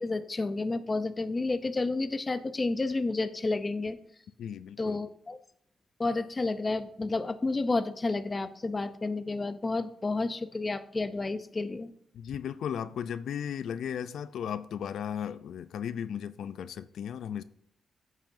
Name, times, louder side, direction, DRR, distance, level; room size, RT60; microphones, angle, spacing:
voice 1, 0.0-4.0 4.8-5.4 6.0-11.9, left 3 dB, 20° left, 10 dB, 0.5 m, -30 dB
voice 2, 4.4-5.0 12.1-17.4, left 8 dB, 75° left, 13 dB, 0.4 m, -36 dB
14.5 x 7.4 x 2.6 m, 0.67 s
wide cardioid pair, 155°, 0 cm